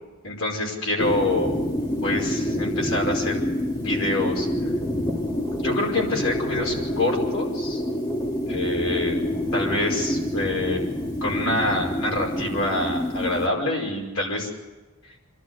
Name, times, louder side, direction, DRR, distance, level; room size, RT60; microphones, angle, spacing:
voice 1, 0.2-1.5 2.0-3.4 3.8-4.5 5.6-7.8 8.5-9.2 9.5-10.9 11.2-14.5, left 2 dB, 70° left, -1 dB, 5.4 m, -26 dB
sound 1, 1.0-13.5, left 1 dB, 20° left, 2.2 m, -27 dB
27.5 x 12.5 x 8.1 m, 1.2 s
head